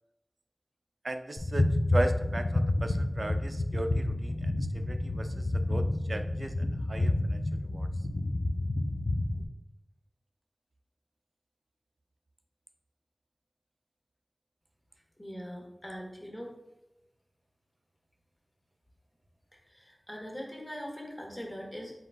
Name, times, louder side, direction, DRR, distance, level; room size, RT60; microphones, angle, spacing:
voice 1, 1.0-7.4 7.7-7.9, right 2 dB, 60° right, 8 dB, 0.3 m, -37 dB
sound 1, 1.4-9.4, left 1 dB, 55° left, 0.4 m, -29 dB
voice 2, 15.2-16.6 19.7-21.9, equal, 20° left, 0 dB, 1.1 m, -41 dB
4.1 x 3.9 x 2.2 m, 0.93 s
wide cardioid pair, 40°, 0 cm